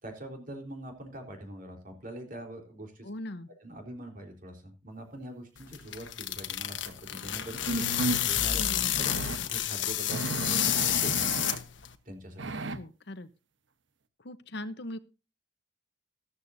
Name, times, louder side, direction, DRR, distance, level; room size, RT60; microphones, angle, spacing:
voice 1, 0.0-3.1 3.6-8.6 9.0-9.2 9.5-11.5 12.1-12.4, right 1 dB, 50° right, 4 dB, 3.9 m, -44 dB
voice 2, 3.0-3.5 8.5-9.0 12.7-13.3 14.2-15.0, left 1 dB, 65° left, 11 dB, 0.9 m, -40 dB
sound 1, 5.6-11.9, left 12 dB, 80° left, 1.2 m, -30 dB
sound 2, 6.9-7.0 7.7-8.2 8.9-9.4 10.1-11.6 12.4-12.8, right 2 dB, 85° right, 1.1 m, -33 dB
14.5 x 13.5 x 2.7 m, 0.30 s
head